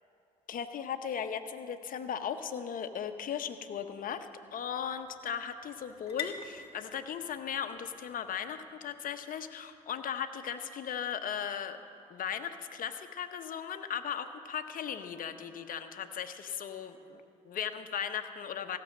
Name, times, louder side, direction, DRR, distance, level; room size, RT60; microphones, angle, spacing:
voice 1, 0.5-11.8 12.1-18.8, left 8 dB, 50° left, 8 dB, 0.9 m, -37 dB
sound 1, 2.8-10.4, left 7 dB, 30° left, 1.6 m, -49 dB
15.5 x 7.0 x 6.4 m, 2.5 s
hypercardioid pair, 60°, 18 cm